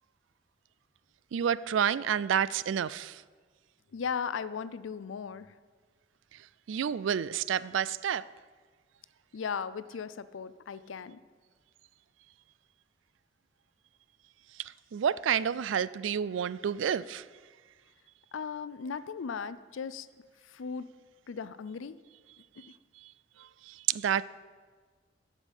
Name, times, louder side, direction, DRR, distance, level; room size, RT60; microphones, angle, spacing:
voice 1, 1.3-3.2 6.7-8.3 14.6-17.3 23.0-23.1 23.4-24.2, right 8 dB, 75° right, 0.3 m, -30 dB
voice 2, 3.9-5.5 9.3-11.2 18.3-20.1 20.4-20.9 21.3-22.0 22.6-22.7, left 6 dB, 85° left, 0.5 m, -37 dB
12.5 x 5.3 x 8.1 m
head